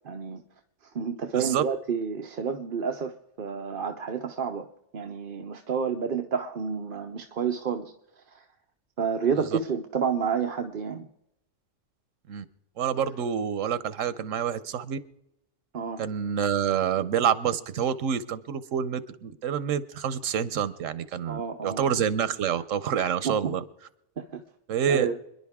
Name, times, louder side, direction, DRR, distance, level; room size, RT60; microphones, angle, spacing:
voice 1, 0.0-0.4 0.9-3.1 3.4-4.7 4.9-7.9 8.3-8.4 9.0-11.1 15.7-16.0 21.2-21.8 23.2-23.4 24.2-24.4 24.9-25.1, right 6 dB, 50° right, 5 dB, 0.9 m, -29 dB
voice 2, 1.3-1.6 9.5-9.6 12.3-12.4 12.8-15.0 16.0-23.6 24.7-25.1, right 8 dB, 85° right, 15 dB, 1.2 m, -27 dB
26.5 x 11.0 x 3.6 m, 0.85 s
omnidirectional pair, 1.3 m